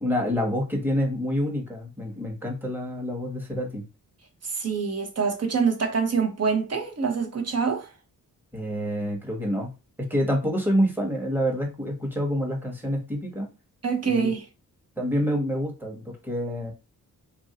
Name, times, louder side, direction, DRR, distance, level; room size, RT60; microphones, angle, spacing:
voice 1, 0.0-3.8 8.5-9.7 10.0-13.5 14.0-14.3 15.0-16.7, equal, 5° right, 1.1 m, -27 dB
voice 2, 4.4-7.9 13.8-14.4, right 5 dB, 45° right, 0.8 m, -25 dB
3.0 x 2.6 x 2.8 m
cardioid pair, 80°, 36 cm